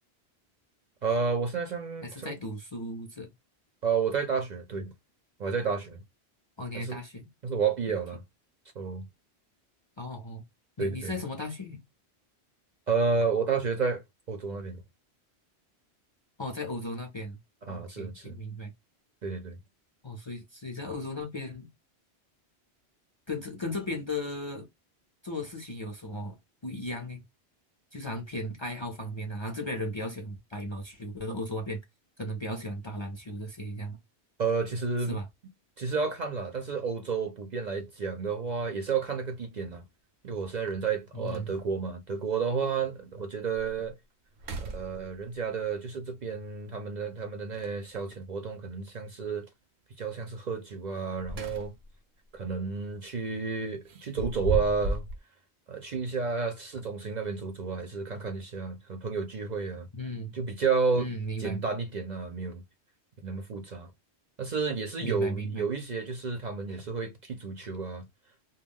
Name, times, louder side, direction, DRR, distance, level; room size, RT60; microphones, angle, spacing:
voice 1, 1.0-2.3 3.8-4.9 5.4-6.0 6.7-7.0 7.4-8.2 8.8-9.1 10.8-11.1 12.9-14.0 14.3-14.8 17.6-18.4 19.2-19.6 34.4-35.2 35.8-39.8 40.2-43.9 44.6-49.5 50.0-51.7 52.3-55.0 55.7-59.9 60.3-61.1 61.4-62.6 63.2-63.9 64.4-68.1, right 5 dB, 50° right, 0.6 m, -31 dB
voice 2, 2.0-3.3 6.6-7.3 10.0-10.4 10.8-11.8 16.4-17.4 17.7-18.7 20.0-21.7 23.3-24.7 25.2-26.4 26.6-27.2 27.9-31.8 32.2-34.0 35.1-35.3 41.1-41.5 59.9-60.3 61.0-61.6 65.0-65.7, left 1 dB, 35° left, 0.5 m, -36 dB
sound 1, 38.7-38.8 40.4-40.5 40.9-41.0 41.3-41.8 42.4-42.5 43.0-43.1 43.5-43.9 44.3-45.4 47.5-48.2 50.9-52.0 52.3-52.6 53.9-55.2, right 2 dB, 75° right, 0.9 m, -35 dB
2.3 x 2.0 x 3.4 m
omnidirectional pair, 1.1 m